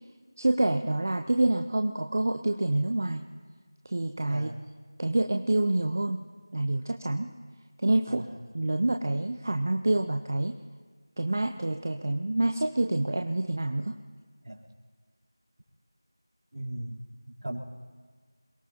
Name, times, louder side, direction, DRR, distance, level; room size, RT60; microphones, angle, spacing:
voice 1, 0.4-3.2 3.9-4.5 5.0-6.2 6.5-7.3 7.8-8.3 8.5-10.5 11.2-14.0, right 2 dB, 35° right, 4 dB, 0.6 m, -27 dB
voice 2, 16.5-17.0 17.4-17.6, right 1 dB, 60° right, -3 dB, 3.6 m, -37 dB
27.5 x 18.0 x 2.9 m, 1.5 s
figure-of-eight pair, 175°, 2 cm